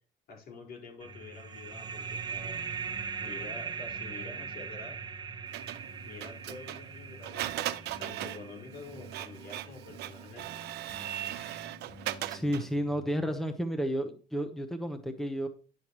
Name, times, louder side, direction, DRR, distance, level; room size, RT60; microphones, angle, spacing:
voice 1, 0.3-2.6 3.2-5.0 6.1-10.5, left 3 dB, 65° left, 0 dB, 4.8 m, -47 dB
sound 1, 1.0-13.1, left 2 dB, 45° left, 1.3 m, -52 dB
sound 2, 1.0-10.3, right 6 dB, 25° right, 0.5 m, -40 dB
Printer, 5.5-12.8, right 14 dB, 80° right, 0.7 m, -39 dB
voice 2, 12.3-15.5, equal, ahead, 7 dB, 1.0 m, -32 dB
11.5 x 7.2 x 3.1 m, 0.37 s
cardioid pair, 110°, 17 cm